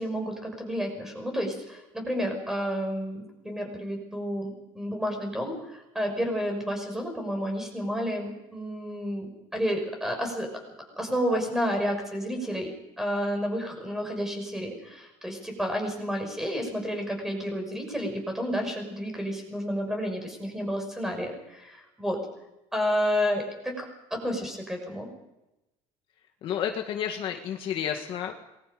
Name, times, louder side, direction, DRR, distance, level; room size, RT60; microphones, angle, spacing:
voice 1, 0.0-10.5 10.9-22.2 22.7-23.8 24.1-25.1, equal, 5° right, 3 dB, 6.2 m, -30 dB
voice 2, 26.4-28.3, left 9 dB, 45° left, 3 dB, 1.9 m, -31 dB
27.5 x 21.5 x 5.2 m, 0.93 s
cardioid pair, 165°, 12 cm